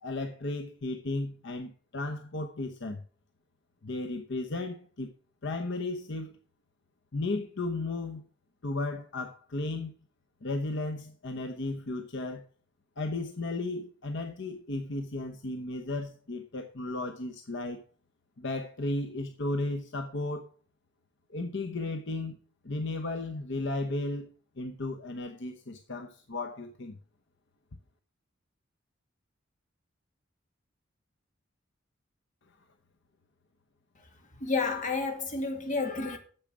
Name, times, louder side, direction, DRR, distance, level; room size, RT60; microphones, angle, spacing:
voice 1, 0.0-3.0 3.8-5.1 5.4-6.4 7.1-8.2 8.6-9.9 10.4-12.4 13.0-17.8 18.4-20.5 21.3-22.4 22.6-24.3 24.6-27.0, left 2 dB, 60° left, 0.9 m, -34 dB
voice 2, 34.4-36.2, left 4 dB, 40° left, 2.0 m, -30 dB
8.9 x 7.3 x 6.1 m
head